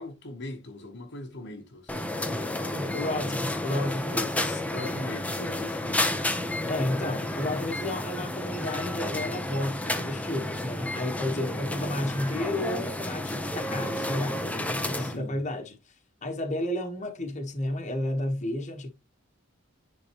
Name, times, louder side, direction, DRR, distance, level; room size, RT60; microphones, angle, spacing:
voice 1, 0.0-3.9 4.7-6.2 6.6-7.2 11.3-11.6 14.9-15.4, left 1 dB, 60° left, 1.2 m, -41 dB
sound 1, 1.9-15.2, left 1 dB, 5° left, 0.7 m, -31 dB
voice 2, 2.7-4.6 6.7-15.8 16.2-18.9, left 1 dB, 35° left, 1.2 m, -32 dB
9.9 x 3.8 x 3.0 m
head